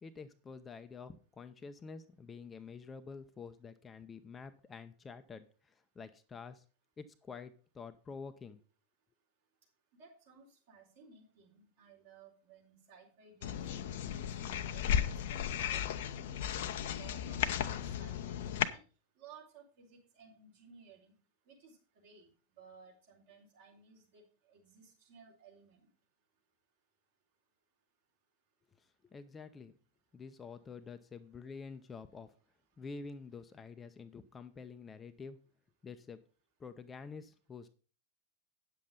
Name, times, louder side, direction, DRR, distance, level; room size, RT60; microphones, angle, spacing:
voice 1, 0.0-6.6 7.0-8.6 29.0-29.7 30.1-32.3 32.8-35.4 35.8-36.2 36.6-37.7, left 5 dB, 20° left, 10 dB, 0.7 m, -48 dB
voice 2, 10.0-15.1 15.6-18.8 19.2-21.1 21.5-25.9, right 6 dB, 55° right, -1 dB, 4.2 m, -58 dB
sound 1, 13.4-18.7, left 9 dB, 55° left, 0.7 m, -35 dB
9.3 x 7.3 x 5.3 m, 0.38 s
figure-of-eight pair, 90°, 0 cm